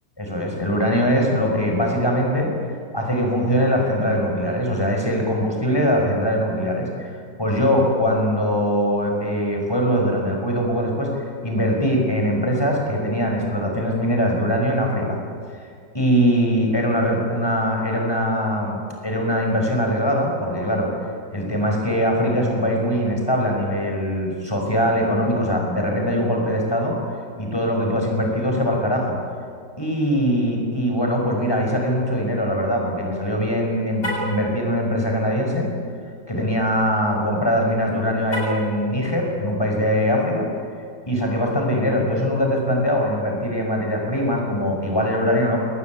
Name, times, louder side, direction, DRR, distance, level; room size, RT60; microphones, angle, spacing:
voice 1, 0.2-2.5 2.9-7.1 7.4-15.2 15.5-15.7 15.9-20.9 21.3-27.0 27.4-29.2 29.8-35.7 36.3-40.5 41.1-45.6, equal, 10° left, 1 dB, 5.6 m, -22 dB
Car, 33.9-34.4 38.2-38.7, equal, 70° left, 7.7 m, -28 dB
22.0 x 20.0 x 9.4 m, 2.1 s
omnidirectional pair, 2.0 m